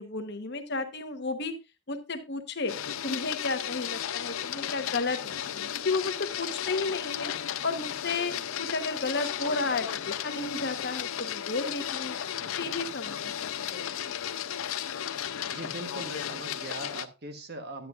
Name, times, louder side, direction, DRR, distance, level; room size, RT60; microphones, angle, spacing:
voice 1, 0.0-1.5 1.9-2.7 3.0-7.3 7.6-8.3 8.6-12.2 12.5-13.3 13.7-13.8, left 3 dB, 50° left, 7 dB, 1.0 m, -32 dB
Printer, 2.7-17.0, left 9 dB, 75° left, 0.5 m, -34 dB
voice 2, 15.5-17.9, right 2 dB, 50° right, 7 dB, 1.1 m, -41 dB
10.5 x 9.2 x 2.4 m, 0.26 s
head